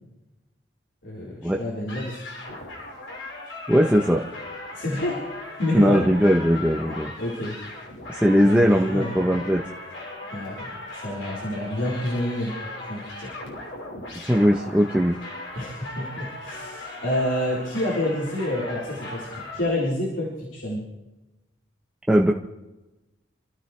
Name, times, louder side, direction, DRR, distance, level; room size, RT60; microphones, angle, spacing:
voice 1, 1.0-2.2 4.7-5.2 5.6-6.0 7.2-7.6 8.4-9.1 10.3-12.5 12.8-13.3 15.6-20.9, left 1 dB, 70° left, -6 dB, 4.2 m, -28 dB
sound 1, 1.9-19.6, left 2 dB, 90° left, 5.9 m, -38 dB
voice 2, 3.7-4.2 5.7-7.1 8.1-9.6 14.2-15.2 22.1-22.3, equal, 5° right, -1 dB, 0.8 m, -19 dB
27.5 x 15.0 x 3.3 m, 1.0 s
head